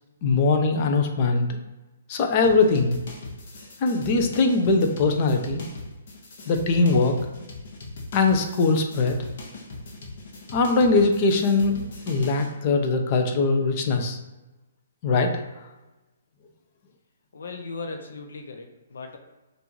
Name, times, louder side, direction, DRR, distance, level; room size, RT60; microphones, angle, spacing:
voice 1, 0.2-1.5 2.1-3.0 3.8-5.6 6.5-7.2 8.1-9.2 10.5-14.2 15.0-15.3, left 3 dB, 40° left, 4 dB, 0.7 m, -21 dB
sound 1, 2.4-12.5, left 2 dB, 55° left, 1.1 m, -40 dB
voice 2, 17.3-19.2, left 3 dB, 75° left, 4 dB, 0.7 m, -37 dB
5.4 x 2.6 x 3.0 m, 1.1 s
hypercardioid pair, 140°, 0 cm